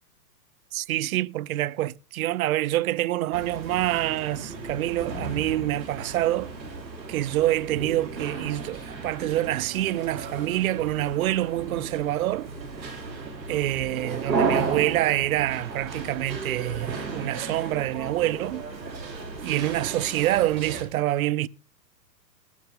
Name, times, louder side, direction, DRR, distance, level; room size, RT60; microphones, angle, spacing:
voice 1, 0.7-6.6 7.1-12.5 13.5-18.6 19.4-21.5, right 15 dB, 60° right, 0.5 m, -26 dB
sound 1, 3.3-20.8, right 4 dB, 85° right, 3.4 m, -34 dB
14.5 x 12.0 x 3.8 m
hypercardioid pair, 120°, 50 cm